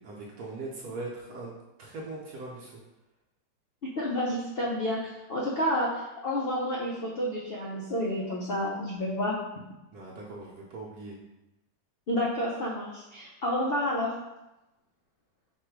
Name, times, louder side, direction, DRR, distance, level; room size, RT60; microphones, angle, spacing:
voice 1, 0.0-1.5 1.8-2.8 9.9-11.2, right 2 dB, 70° right, -3 dB, 1.2 m, -40 dB
voice 2, 3.8-9.4 12.1-14.1, left 1 dB, 90° left, -5 dB, 0.5 m, -30 dB
4.2 x 2.6 x 4.5 m, 0.97 s
omnidirectional pair, 1.9 m